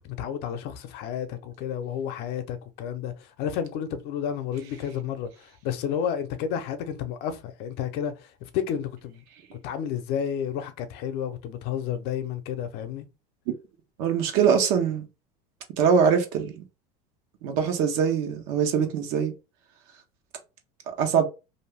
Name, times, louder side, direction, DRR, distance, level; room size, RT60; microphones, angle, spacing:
voice 1, 0.0-9.2 9.5-13.1, left 8 dB, 60° left, 0.7 m, -31 dB
voice 2, 14.0-15.0 15.8-16.6 17.4-19.3 21.0-21.3, right 7 dB, 65° right, 0.9 m, -22 dB
2.6 x 2.3 x 3.3 m
supercardioid pair, 105°, 19 cm